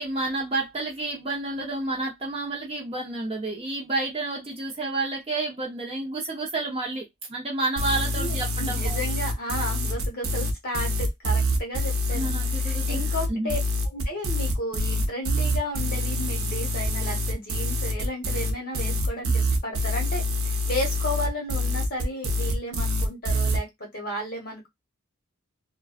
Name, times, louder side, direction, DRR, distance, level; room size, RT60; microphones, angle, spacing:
voice 1, 0.0-9.0 12.1-13.6, right 2 dB, 25° right, 0.6 m, -30 dB
sound 1, 7.8-23.6, left 1 dB, 70° right, 0.6 m, -26 dB
voice 2, 8.2-12.3 12.6-13.6 13.9-24.7, left 1 dB, 40° left, 1.1 m, -33 dB
2.5 x 2.2 x 2.4 m
head